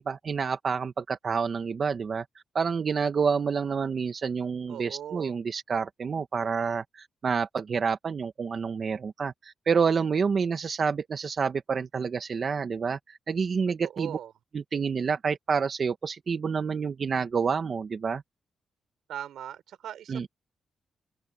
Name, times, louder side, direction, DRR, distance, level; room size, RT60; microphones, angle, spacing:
voice 1, 0.0-2.2 2.5-14.2 14.5-18.2 20.1-20.3, right 5 dB, 50° right, 1.4 m, -28 dB
voice 2, 4.7-5.3 13.8-14.3 19.1-20.3, right 10 dB, 90° right, 4.4 m, -39 dB
cardioid pair, 90°, 0 cm